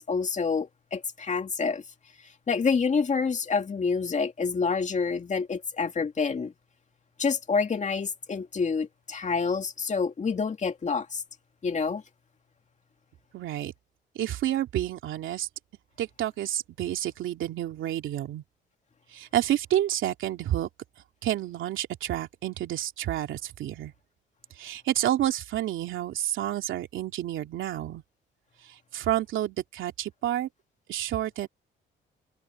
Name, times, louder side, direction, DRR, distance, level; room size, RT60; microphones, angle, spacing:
voice 1, 0.0-1.8 2.5-6.5 7.2-11.2 11.6-12.0, left 5 dB, 35° left, 2.4 m, -27 dB
voice 2, 13.3-13.7 14.1-15.5 16.0-18.4 19.1-20.7 21.2-23.9 24.6-28.0 28.6-30.5 30.9-31.5, right 12 dB, 80° right, 2.8 m, -29 dB
cardioid pair, 90°, 20 cm